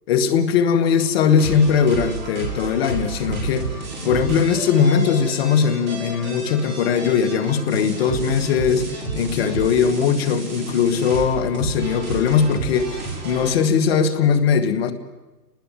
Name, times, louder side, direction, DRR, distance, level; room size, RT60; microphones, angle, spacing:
voice 1, 0.1-3.7 4.0-14.9, left 6 dB, 40° left, 11 dB, 2.3 m, -20 dB
sound 1, 1.4-13.5, right 3 dB, 20° right, 7.3 m, -31 dB
28.5 x 20.0 x 7.9 m, 1.1 s
hypercardioid pair, 145°, 47 cm